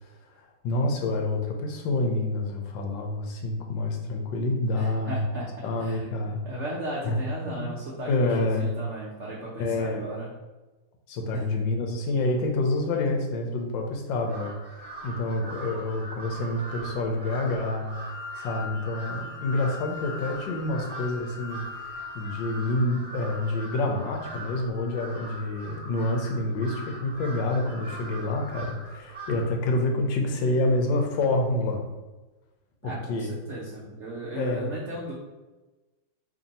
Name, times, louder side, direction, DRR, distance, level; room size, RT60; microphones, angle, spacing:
voice 1, 0.0-5.2 5.6-6.4 7.0-7.2 7.5-7.7 8.1-8.7 9.6-10.1 11.1-18.0 18.4-31.9 32.8-33.3 34.4-34.7, left 2 dB, 80° left, 2 dB, 1.3 m, -28 dB
voice 2, 4.8-5.5 5.8-6.0 6.4-10.3 11.3-11.4 32.8-35.1, right 1 dB, 70° right, -5 dB, 0.6 m, -36 dB
Crow, 14.2-29.6, right 2 dB, 5° right, 1.0 m, -41 dB
sound 1, 17.9-23.7, left 6 dB, 35° left, 1.3 m, -42 dB
3.0 x 2.6 x 4.0 m, 1.2 s
omnidirectional pair, 2.1 m